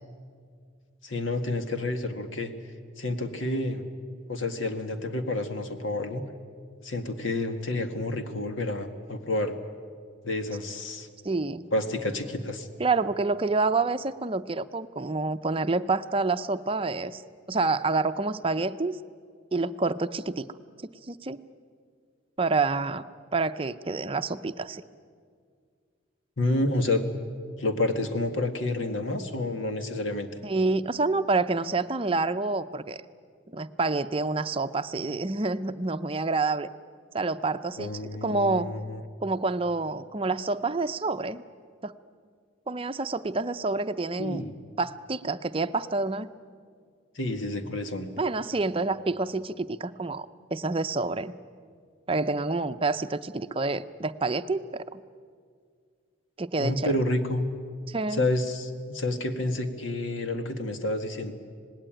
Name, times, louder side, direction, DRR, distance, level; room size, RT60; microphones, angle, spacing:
voice 1, 1.0-2.5 3.0-3.8 4.3-6.2 6.8-9.5 10.2-11.1 11.7-12.7 26.4-27.0 27.6-30.3 37.8-39.0 44.2-44.5 47.2-48.1 56.6-57.4 58.1-61.3, left 2 dB, 90° left, 7 dB, 1.9 m, -29 dB
voice 2, 11.2-11.6 12.8-17.2 17.5-19.0 19.5-20.5 21.1-21.4 22.4-23.0 23.3-24.8 30.4-33.0 33.5-36.7 37.1-37.9 38.2-38.7 39.2-41.4 41.8-41.9 42.7-44.4 44.8-46.3 48.2-51.3 52.1-55.0 56.4-56.9 57.9-58.3, right 3 dB, 30° right, 11 dB, 0.6 m, -28 dB
26.5 x 19.0 x 9.0 m, 2.1 s
head